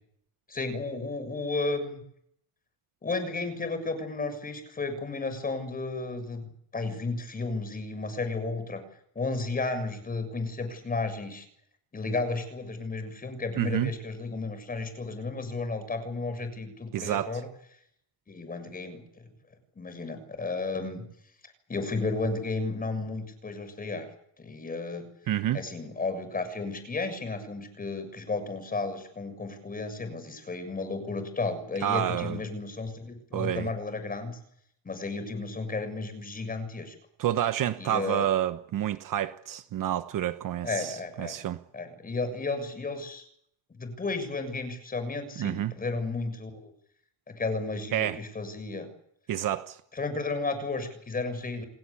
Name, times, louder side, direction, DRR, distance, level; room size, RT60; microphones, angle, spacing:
voice 1, 0.5-2.0 3.0-8.8 9.2-11.5 11.9-17.5 18.3-19.3 19.8-21.1 21.7-24.1 24.4-25.0 25.5-34.4 34.8-37.0 37.8-38.3 40.6-41.4 41.7-43.3 43.8-46.7 47.3-48.9 49.9-51.7, left 3 dB, 20° left, 6.9 m, -33 dB
voice 2, 13.6-13.9 16.9-17.4 25.3-25.6 31.8-32.4 33.3-33.7 37.2-41.6 45.4-45.7 47.9-48.2 49.3-49.8, right 11 dB, 45° right, 1.2 m, -29 dB
29.5 x 18.5 x 8.7 m
cardioid pair, 150°, 44 cm